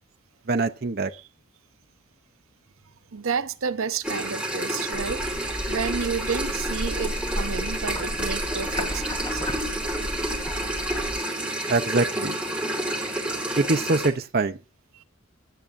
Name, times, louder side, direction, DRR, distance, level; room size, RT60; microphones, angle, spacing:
voice 1, 0.5-1.1 11.7-12.4 13.6-14.6, right 3 dB, 45° right, 0.6 m, -24 dB
voice 2, 3.1-5.3 5.7-9.4 12.7-12.8 14.9-15.0, right 6 dB, 80° right, 0.8 m, -31 dB
sound 1, 4.0-14.1, right 1 dB, 5° right, 2.6 m, -29 dB
sound 2, 4.9-11.2, equal, 20° left, 2.6 m, -33 dB
16.0 x 9.5 x 2.5 m
head